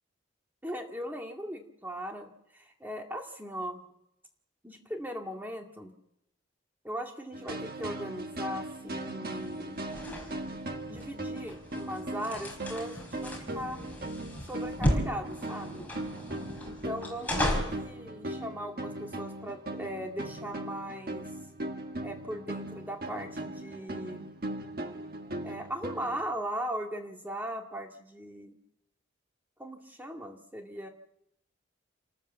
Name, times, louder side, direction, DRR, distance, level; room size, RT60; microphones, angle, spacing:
voice 1, 0.6-3.8 4.6-5.9 6.8-9.8 10.5-10.6 10.9-13.8 14.5-15.9 16.6-21.2 22.0-24.3 25.4-28.6 29.6-30.9, equal, 10° right, 2 dB, 2.1 m, -39 dB
sound 1, 7.3-26.2, right 1 dB, 45° right, 1.5 m, -39 dB
sound 2, 9.3-17.8, equal, 10° left, 4.8 m, -35 dB
29.0 x 14.0 x 7.0 m, 0.80 s
head